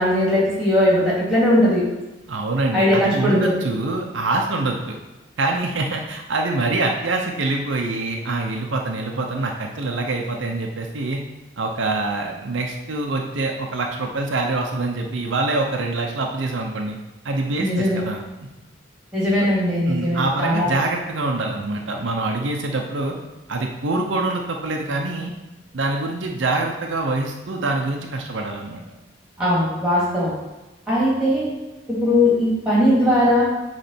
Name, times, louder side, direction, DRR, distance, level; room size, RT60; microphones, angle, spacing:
voice 1, 0.0-1.8 2.7-3.5 17.6-18.0 19.1-20.7 29.4-30.3 30.9-31.5 31.9-33.4, left 1 dB, 5° right, -7 dB, 2.2 m, -19 dB
voice 2, 2.3-5.0 5.4-11.2 11.6-17.0 17.2-18.2 19.4-19.5 19.9-23.2 23.5-25.3 25.7-28.8, right 2 dB, 70° right, 2 dB, 0.7 m, -25 dB
8.1 x 3.3 x 4.3 m, 1.1 s
head